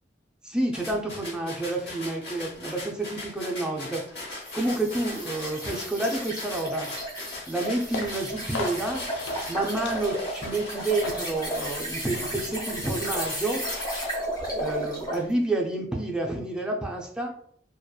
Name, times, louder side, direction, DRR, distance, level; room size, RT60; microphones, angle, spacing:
voice 1, 0.4-4.0 4.5-6.9 7.5-9.0 9.5-13.6 14.5-17.3, right 2 dB, 5° right, 0 dB, 0.4 m, -29 dB
sound 1, 0.7-12.4 12.8-14.4, left 2 dB, 65° left, 1.0 m, -40 dB
sound 2, 4.4-15.3, right 1 dB, 25° left, 0.9 m, -34 dB
sound 3, 7.8-13.4, left 3 dB, 85° left, 0.3 m, -40 dB
2.8 x 2.2 x 2.3 m, 0.63 s
head